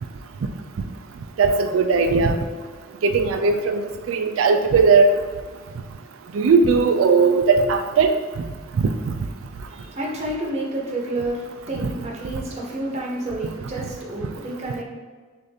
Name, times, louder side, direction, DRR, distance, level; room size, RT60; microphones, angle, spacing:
voice 1, 1.4-2.4 3.0-3.8 4.1-5.1 6.3-8.1 8.8-8.9, right 4 dB, 90° right, 6 dB, 0.3 m, -17 dB
voice 2, 9.5-14.8, right 1 dB, 35° right, -3 dB, 0.7 m, -30 dB
6.4 x 2.5 x 2.8 m, 1.5 s
head